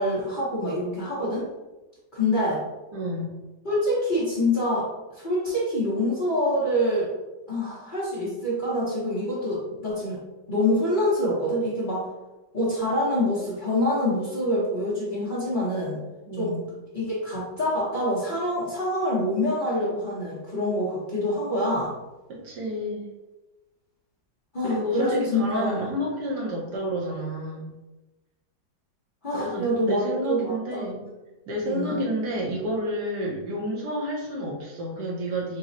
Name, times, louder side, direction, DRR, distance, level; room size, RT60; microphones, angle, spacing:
voice 1, 0.0-1.5 2.1-2.6 3.6-7.1 7.5-10.2 10.5-12.0 12.5-16.0 16.4-16.6 16.9-21.9 24.5-25.9 29.2-30.9 31.6-32.0, left 1 dB, 35° left, -9 dB, 0.9 m, -26 dB
voice 2, 2.9-3.3 9.6-9.7 16.3-16.6 22.3-23.1 24.6-27.7 29.3-31.0 31.5-35.6, equal, 70° right, -3 dB, 1.5 m, -30 dB
4.2 x 2.3 x 3.9 m, 1.1 s
omnidirectional pair, 2.0 m